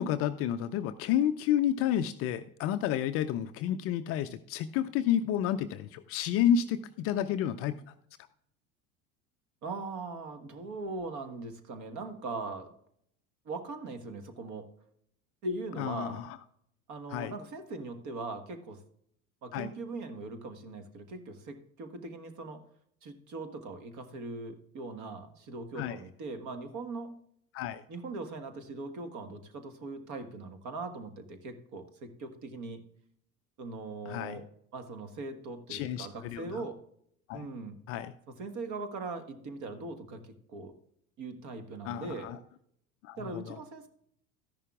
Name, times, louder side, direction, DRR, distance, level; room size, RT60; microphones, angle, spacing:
voice 1, 0.0-7.8 15.8-16.4 17.1-17.3 19.5-19.7 25.8-26.0 27.5-27.8 34.1-34.4 35.7-36.6 37.3-37.5 37.9-38.1 41.8-42.4 43.0-43.6, left 10 dB, 35° left, 10 dB, 0.5 m, -30 dB
voice 2, 9.6-12.7 13.4-14.7 15.4-16.2 16.9-18.8 19.4-22.6 23.0-27.1 27.9-32.8 33.6-34.4 34.7-36.8 37.3-37.8 38.4-40.7 41.2-42.3 43.2-43.9, right 3 dB, 40° right, 8 dB, 1.5 m, -40 dB
13.5 x 11.0 x 2.4 m, 0.69 s
figure-of-eight pair, 75°, 43 cm